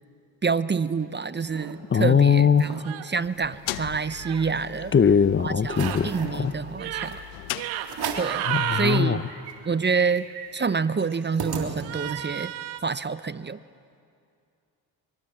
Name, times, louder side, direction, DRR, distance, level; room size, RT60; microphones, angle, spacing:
voice 1, 0.4-4.9 5.4-7.2 8.2-8.5 8.7-9.3 9.6-10.3 10.5-12.5 12.8-13.6, right 5 dB, 25° right, 15 dB, 0.8 m, -27 dB
sound 1, 0.9-1.7 2.2-2.3 2.5-2.8 3.2-4.8 5.2-5.3 5.7-6.4 7.1-7.2 7.8-8.4 8.9-9.0 9.2-12.2, right 6 dB, 55° right, 3.5 m, -37 dB
voice 2, 1.9-2.8 4.9-6.5 8.5-9.2, left 7 dB, 25° left, 15 dB, 0.7 m, -20 dB
sound 2, 2.8-3.1 4.1-4.4 5.6-6.0 6.7-7.1 7.5-7.9 8.1-9.0 11.8-12.8, right 11 dB, 80° right, 1.6 m, -31 dB
sound 3, 3.2-8.3, left 18 dB, 90° left, 0.7 m, -39 dB
24.0 x 23.0 x 7.7 m, 2.4 s
supercardioid pair, 60°, 46 cm